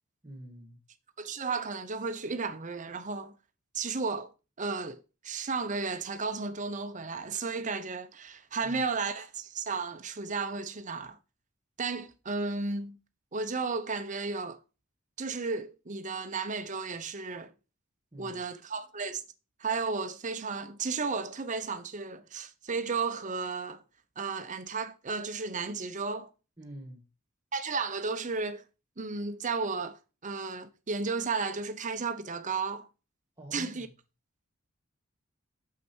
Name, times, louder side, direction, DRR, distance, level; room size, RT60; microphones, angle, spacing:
voice 1, 0.2-0.8 8.6-8.9 18.1-18.4 26.6-27.0 33.4-33.9, right 1 dB, 20° right, 2.2 m, -46 dB
voice 2, 1.2-3.3 3.7-4.3 4.6-11.2 11.8-13.0 13.3-14.6 15.2-17.5 18.2-19.2 19.6-23.8 24.2-26.3 27.5-28.6 29.0-32.9 33.5-33.9, right 4 dB, 35° right, 0.8 m, -33 dB
6.7 x 6.0 x 4.5 m
head